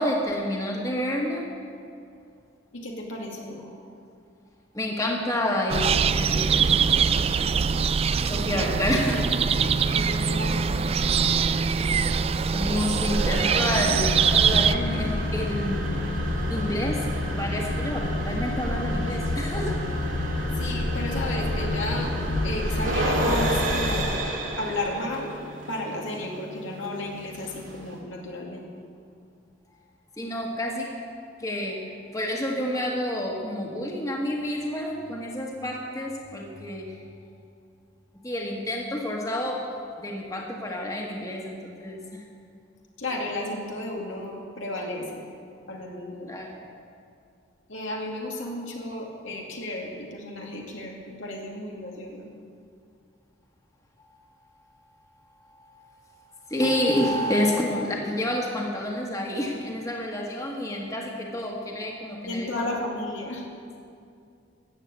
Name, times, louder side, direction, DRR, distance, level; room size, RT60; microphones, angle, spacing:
voice 1, 0.0-1.4 4.7-6.5 8.3-9.3 11.7-11.9 12.5-14.0 14.3-15.9 16.5-17.1 17.4-19.8 30.2-30.9 31.4-31.8 32.1-36.9 38.2-39.6 40.0-42.0 46.3-46.5 56.5-62.6, left 1 dB, 15° left, -1 dB, 1.5 m, -29 dB
voice 2, 2.7-3.6 9.5-10.9 20.0-20.1 20.6-22.1 22.4-24.3 24.6-25.4 25.7-28.8 43.0-45.2 45.7-46.3 47.7-52.3 62.3-63.5, left 1 dB, 80° left, -1 dB, 2.4 m, -33 dB
sound 1, 5.7-14.7, right 6 dB, 30° right, 0.3 m, -23 dB
sound 2, 13.0-28.0, right 2 dB, 85° right, 2.5 m, -32 dB
sound 3, 13.9-24.2, left 2 dB, 45° left, 0.7 m, -29 dB
14.0 x 7.6 x 8.7 m, 2.4 s
head